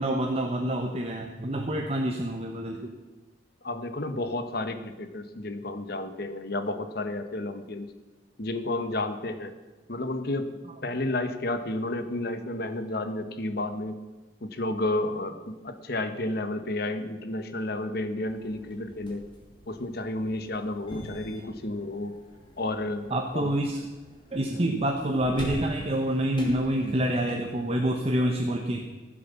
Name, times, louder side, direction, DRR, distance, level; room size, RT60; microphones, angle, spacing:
voice 1, 0.0-2.9 23.1-23.8 24.3-28.9, right 1 dB, 30° right, 2 dB, 1.0 m, -27 dB
voice 2, 3.6-7.9 8.4-9.5 9.9-10.5 10.8-14.0 14.4-19.2 19.7-22.1 22.6-23.5, left 2 dB, 55° left, 9 dB, 1.1 m, -31 dB
sound 1, 18.3-28.2, equal, 25° left, 2.8 m, -45 dB
15.5 x 7.7 x 6.9 m, 1.2 s
head